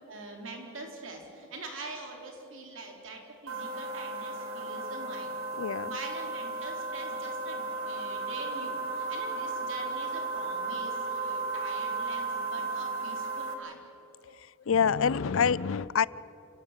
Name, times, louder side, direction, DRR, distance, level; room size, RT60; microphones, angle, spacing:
voice 1, 0.1-5.3 5.9-13.8, right 3 dB, 65° right, 2 dB, 4.0 m, -44 dB
sound 1, 3.5-13.5, right 3 dB, 85° right, 2.5 m, -34 dB
voice 2, 5.6-5.9 14.7-16.1, left 6 dB, 75° left, 21 dB, 0.5 m, -26 dB
29.0 x 17.0 x 7.5 m, 2.9 s
head